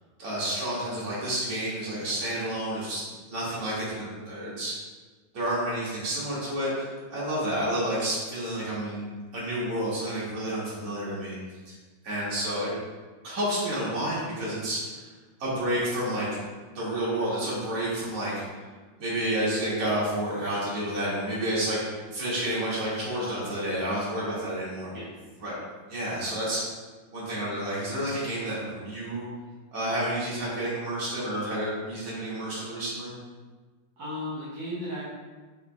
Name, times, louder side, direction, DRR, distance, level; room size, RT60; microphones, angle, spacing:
voice 1, 0.2-4.8 5.3-9.0 9.3-11.4 11.7-11.8 12.0-12.7 13.2-15.0 15.4-16.3 16.7-18.6 19.0-24.9 25.4-25.5 25.9-26.6 27.1-29.2 29.7-33.1, right 1 dB, 45° right, -9 dB, 2.4 m, -30 dB
voice 2, 34.0-35.0, left 1 dB, 65° right, -10 dB, 2.6 m, -35 dB
9.1 x 3.4 x 3.4 m, 1.4 s
omnidirectional pair, 2.1 m